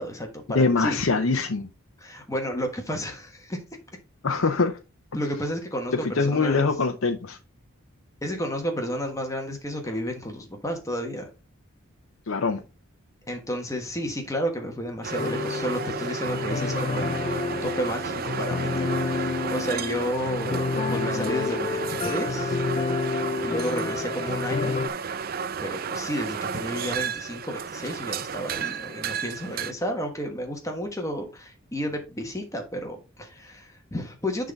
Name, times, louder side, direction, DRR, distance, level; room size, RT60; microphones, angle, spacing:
voice 1, 0.0-1.0 2.0-3.6 5.1-6.7 8.2-11.3 13.3-22.6 23.4-24.8 25.6-34.5, equal, 15° left, 1.2 m, -32 dB
voice 2, 0.5-1.7 4.2-4.8 6.0-7.4 12.3-12.6, left 4 dB, 70° left, 0.7 m, -23 dB
sound 1, 15.0-29.7, right 6 dB, 45° right, 0.4 m, -32 dB
sound 2, 15.2-24.9, left 4 dB, 30° left, 0.3 m, -29 dB
10.0 x 3.8 x 4.0 m
head